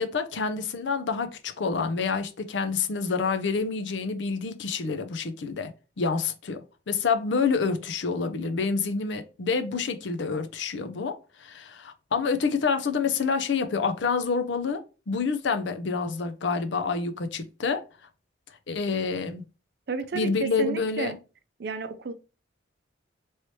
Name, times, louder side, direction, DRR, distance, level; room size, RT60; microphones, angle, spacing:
voice 1, 0.0-5.7 6.0-17.8 18.7-19.4 20.1-21.1, left 5 dB, 75° left, 0.5 m, -28 dB
voice 2, 19.9-21.2 21.6-22.1, right 4 dB, 55° right, 0.5 m, -32 dB
3.1 x 2.8 x 3.1 m
head